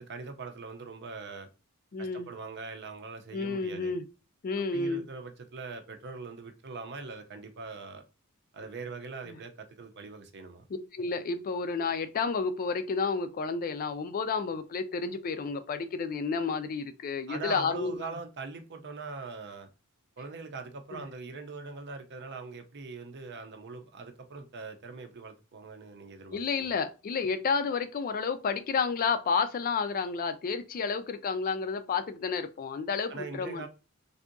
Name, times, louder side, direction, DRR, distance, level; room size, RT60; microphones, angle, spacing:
voice 1, 0.0-1.5 2.0-3.9 4.7-8.0 8.5-10.6 17.3-19.7 20.2-26.7 33.1-33.7, right 4 dB, 55° right, 0.6 m, -42 dB
voice 2, 1.9-2.3 3.3-4.0 4.4-5.0 9.3-9.4 10.9-18.1 20.9-21.0 26.3-33.7, left 5 dB, 40° left, 0.3 m, -31 dB
3.5 x 2.7 x 2.5 m
head